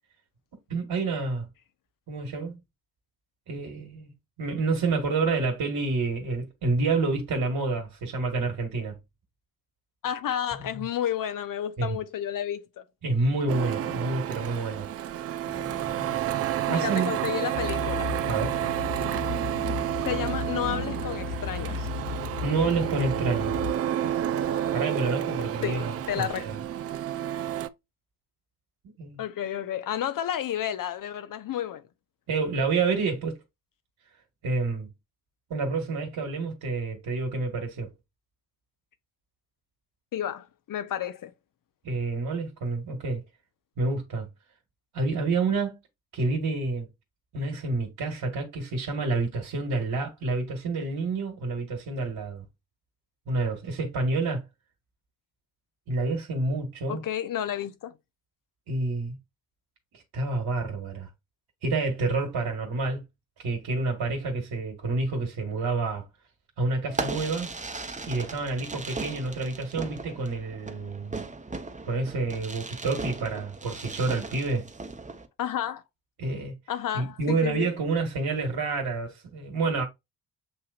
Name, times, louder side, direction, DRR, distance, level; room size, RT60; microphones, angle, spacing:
voice 1, 0.7-1.5 2.1-2.6 3.5-4.1 4.4-9.0 10.7-10.8 11.8-12.0 13.0-14.9 15.5-16.1 16.7-17.1 18.3-18.6 22.4-23.6 24.7-26.6 29.0-29.2 32.3-33.4 34.4-34.9 35.5-37.9 41.8-43.2 43.8-44.3 44.9-45.8 46.1-46.9 47.3-52.4 53.3-54.4 55.9-57.0 58.7-59.2 60.1-61.1 61.6-63.0 63.4-66.0 66.6-67.5 68.0-71.2 71.8-74.7 76.2-76.5 76.9-79.8, right 3 dB, 50° right, 1.6 m, -28 dB
voice 2, 10.0-12.8 16.7-18.1 20.0-21.9 25.6-26.5 29.2-31.8 40.1-41.3 56.9-57.9 75.4-75.8 76.7-77.7, left 10 dB, 45° left, 0.8 m, -31 dB
Printer, 13.5-27.7, right 11 dB, 35° right, 0.4 m, -30 dB
sound 1, 17.5-23.7, left 6 dB, 80° left, 0.6 m, -35 dB
Fireworks, 66.9-75.3, right 3 dB, 15° right, 0.9 m, -37 dB
7.5 x 2.8 x 2.5 m
figure-of-eight pair, 45°, 47 cm